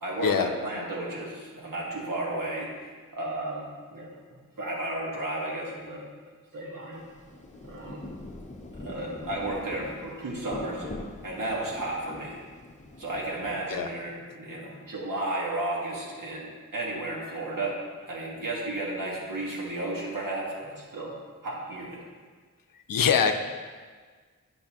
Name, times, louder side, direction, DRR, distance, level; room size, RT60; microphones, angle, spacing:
voice 1, 0.0-2.7 3.1-4.1 4.6-6.0 6.5-7.1 7.6-8.1 8.8-10.8 11.2-12.4 13.0-17.8 18.0-21.1 21.4-22.0, right 2 dB, 75° right, -4 dB, 1.7 m, -33 dB
Rain, 6.9-14.2, left 2 dB, 20° left, 0.8 m, -43 dB
voice 2, 22.9-23.3, left 7 dB, 85° left, 7 dB, 0.6 m, -23 dB
10.5 x 5.3 x 3.0 m, 1.5 s
wide cardioid pair, 65°, 33 cm